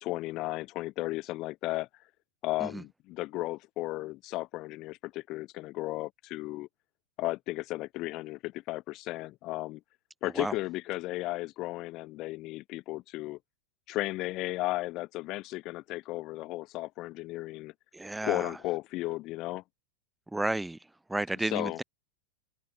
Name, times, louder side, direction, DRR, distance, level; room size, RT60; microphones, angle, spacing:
voice 1, 0.0-1.9 2.4-6.7 7.2-9.8 10.2-13.4 13.9-17.7 18.2-19.6 21.4-21.8, left 19 dB, 40° left, 1.4 m, -34 dB
voice 2, 17.9-18.5 20.3-20.8 21.1-21.8, right 2 dB, 5° right, 1.5 m, -32 dB
open air
figure-of-eight pair, 90°, 0 cm